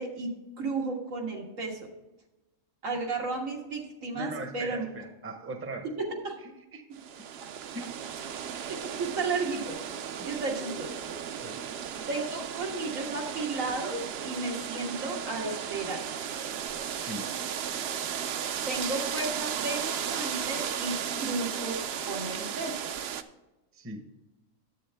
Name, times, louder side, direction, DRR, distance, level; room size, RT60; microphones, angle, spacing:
voice 1, 0.0-1.8 2.8-4.9 6.0-6.4 6.9-7.0 7.4-7.5 8.7-9.8 10.3-11.0 12.1-16.0 18.7-22.8, right 3 dB, 90° right, 0 dB, 2.1 m, -33 dB
voice 2, 4.1-5.9 6.4-6.8 7.7-8.0 10.2-10.3 11.4-11.6 16.9-17.3 23.7-24.1, right 2 dB, 15° right, 6 dB, 0.6 m, -39 dB
sound 1, 7.0-23.2, right 8 dB, 65° right, 0.7 m, -35 dB
10.5 x 8.1 x 3.5 m, 1.0 s
omnidirectional pair, 1.3 m